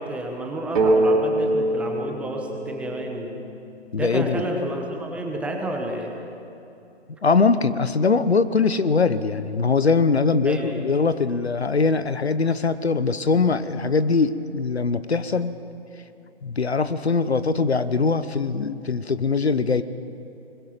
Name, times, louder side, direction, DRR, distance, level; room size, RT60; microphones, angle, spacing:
voice 1, 0.0-3.3 4.0-6.1 10.4-10.9, right 1 dB, 5° right, 2 dB, 0.9 m, -30 dB
sound 1, 0.8-4.4, right 1 dB, 50° right, 2.8 m, -24 dB
voice 2, 3.9-4.5 7.2-15.5 16.4-19.8, left 4 dB, 70° left, 13 dB, 1.0 m, -22 dB
21.0 x 21.0 x 5.9 m, 2.7 s
figure-of-eight pair, 130°, 33 cm